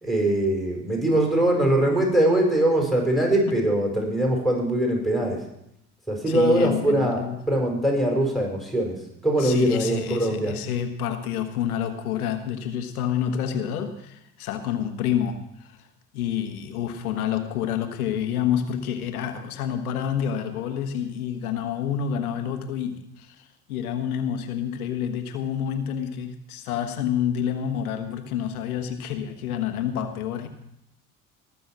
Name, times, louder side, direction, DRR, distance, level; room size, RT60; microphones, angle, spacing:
voice 1, 0.0-5.4 6.1-9.0 9.2-10.5, right 1 dB, ahead, 0 dB, 5.1 m, -22 dB
voice 2, 6.3-7.4 9.4-15.7 16.1-30.5, left 9 dB, 90° left, 8 dB, 1.3 m, -28 dB
19.0 x 6.9 x 6.1 m, 0.81 s
hypercardioid pair, 60°, 43 cm